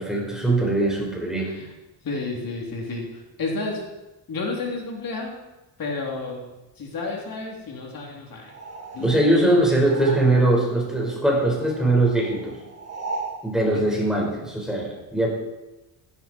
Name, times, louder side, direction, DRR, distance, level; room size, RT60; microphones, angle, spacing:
voice 1, 0.0-1.5 9.0-12.6 13.4-15.3, right 1 dB, ahead, -3 dB, 5.5 m, -21 dB
voice 2, 2.0-3.8 4.3-5.4 5.8-6.5 6.8-8.5 8.9-9.2 9.5-9.8 13.6-13.8, left 3 dB, 50° left, -1 dB, 3.8 m, -31 dB
sound 1, 8.4-10.7 10.9-13.4, right 3 dB, 35° right, 3.0 m, -37 dB
17.0 x 16.5 x 4.7 m, 1.0 s
cardioid pair, 140°, 45 cm